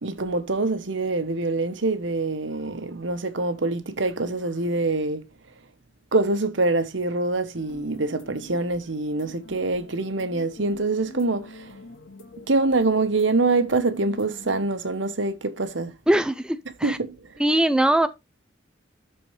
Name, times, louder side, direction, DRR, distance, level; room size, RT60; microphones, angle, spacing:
voice 1, 0.0-5.2 6.1-11.7 12.5-15.9 16.8-17.1, right 3 dB, 70° right, 1.1 m, -25 dB
sound 1, 7.6-14.7, left 2 dB, 85° left, 2.3 m, -45 dB
voice 2, 16.1-17.0 17.4-18.1, right 1 dB, 5° right, 0.4 m, -21 dB
12.5 x 4.4 x 3.3 m
head